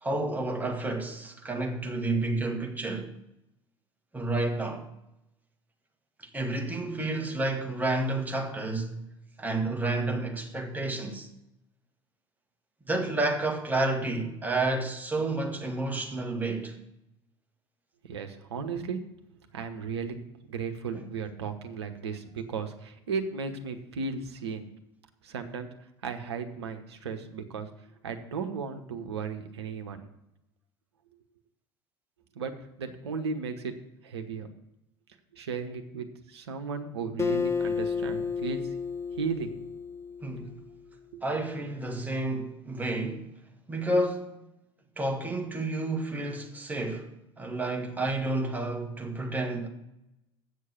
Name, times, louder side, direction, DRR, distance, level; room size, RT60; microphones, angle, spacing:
voice 1, 0.0-3.1 4.1-4.9 6.2-9.1 9.4-11.3 12.9-16.8 20.9-21.1 40.2-40.6 41.2-43.3 43.7-44.4 45.0-49.7, right 2 dB, 10° right, 1.7 m, -30 dB
voice 2, 18.0-19.0 19.5-20.1 20.5-24.7 25.2-25.7 26.0-27.7 28.0-30.0 32.3-32.5 32.8-33.7 34.0-34.5 35.3-38.6 39.1-39.5 41.1-41.2, right 5 dB, 75° right, 1.0 m, -35 dB
Acoustic guitar, 37.2-40.7, left 5 dB, 20° left, 0.7 m, -31 dB
8.2 x 6.5 x 7.0 m
figure-of-eight pair, 65°, 14 cm